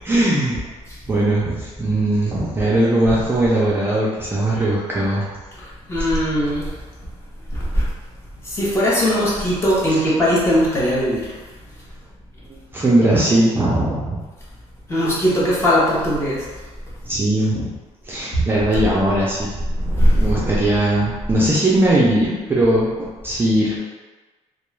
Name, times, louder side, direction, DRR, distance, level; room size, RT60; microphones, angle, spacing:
voice 1, 0.0-0.6 1.1-5.3 12.5-14.2 17.1-17.7 18.1-19.5 20.1-23.7, right 1 dB, 20° right, -7 dB, 0.4 m, -19 dB
voice 2, 5.6-6.7 7.5-7.9 8.4-11.3 14.9-16.5 18.3-18.4 19.7-20.3, equal, 20° left, -7 dB, 0.7 m, -19 dB
2.3 x 2.2 x 3.1 m, 1.3 s
cardioid pair, 160°, 12 cm